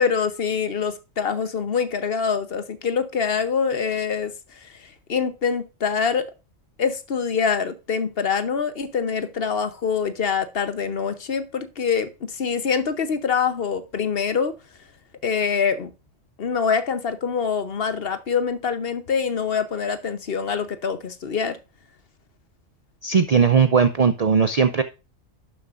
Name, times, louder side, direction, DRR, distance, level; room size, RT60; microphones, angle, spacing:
voice 1, 0.0-6.3 6.8-14.5 15.2-15.9 16.4-21.6, left 6 dB, 50° left, 1.0 m, -25 dB
voice 2, 23.0-24.8, right 6 dB, 55° right, 0.4 m, -18 dB
11.5 x 7.3 x 2.5 m
omnidirectional pair, 1.4 m